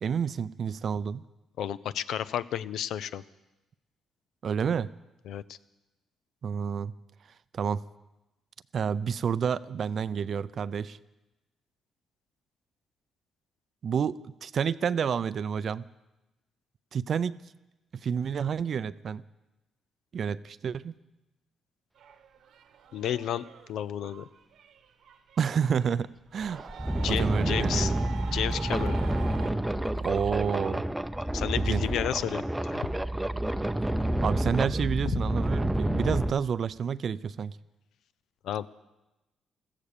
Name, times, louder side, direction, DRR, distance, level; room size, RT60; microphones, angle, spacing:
voice 1, 0.0-1.2 4.4-4.9 6.4-6.9 7.5-7.8 8.7-11.0 13.8-15.9 16.9-17.4 17.9-19.2 20.1-20.9 25.4-26.6 27.1-28.0 30.0-30.8 31.6-31.8 34.2-37.6, right 7 dB, 55° right, 17 dB, 0.5 m, -29 dB
voice 2, 1.6-3.2 5.3-5.6 22.9-24.3 27.0-27.9 28.3-28.9 31.3-32.9 38.4-38.7, left 10 dB, 75° left, 15 dB, 0.6 m, -32 dB
sound 1, 22.0-26.0 26.3-29.5, right 7 dB, 75° right, 1.2 m, -44 dB
sound 2, 26.4-36.3, right 1 dB, 5° right, 0.6 m, -29 dB
15.0 x 14.5 x 6.7 m, 1.0 s
cardioid pair, 90°, 0 cm